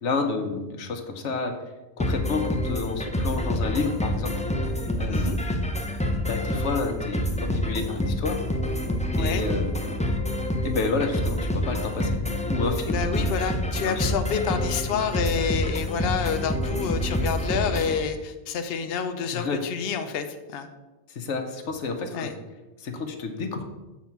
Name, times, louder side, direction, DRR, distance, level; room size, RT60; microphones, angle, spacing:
voice 1, 0.0-1.5 2.0-4.4 5.0-5.3 6.2-8.4 9.2-10.1 10.6-12.1 12.5-13.4 13.8-14.0 19.3-19.6 21.1-22.3 22.8-23.6, left 4 dB, 80° left, 5 dB, 1.2 m, -30 dB
sound 1, 2.0-18.0, left 1 dB, 10° left, 0.4 m, -27 dB
voice 2, 12.9-20.7 22.1-22.3, left 6 dB, 60° left, 7 dB, 0.8 m, -28 dB
7.4 x 4.1 x 5.8 m, 1.1 s
omnidirectional pair, 1.2 m